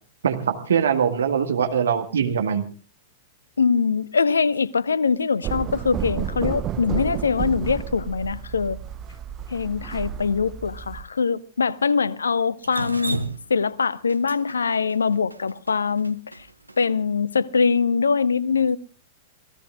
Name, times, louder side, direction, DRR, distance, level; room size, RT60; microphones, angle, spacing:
voice 1, 0.2-2.7, right 7 dB, 65° right, 1.7 m, -22 dB
voice 2, 3.6-8.8 9.5-13.2 13.5-16.2 16.8-18.8, left 5 dB, 70° left, 0.8 m, -23 dB
sound 1, 5.4-11.0, right 9 dB, 30° right, 0.8 m, -31 dB
Drip, 12.6-16.8, right 2 dB, 85° right, 1.1 m, -32 dB
29.0 x 17.5 x 2.4 m
figure-of-eight pair, 100°, 0 cm